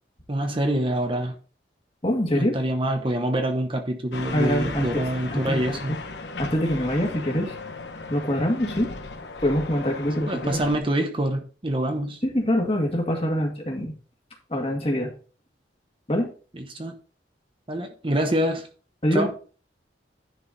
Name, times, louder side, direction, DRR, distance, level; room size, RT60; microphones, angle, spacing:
voice 1, 0.3-1.4 2.3-6.0 10.3-12.2 16.5-16.9 17.7-18.7 19.1-19.3, right 1 dB, 30° right, 5 dB, 0.9 m, -26 dB
voice 2, 2.0-2.6 4.3-5.0 5.3-6.0 6.4-7.6 8.1-8.9 9.4-10.6 12.2-13.9 14.5-15.1 16.1-16.3 19.0-19.3, equal, 35° left, 1 dB, 2.0 m, -24 dB
sound 1, 4.1-10.8, left 3 dB, 75° left, 1.1 m, -36 dB
10.0 x 4.5 x 4.1 m, 0.38 s
head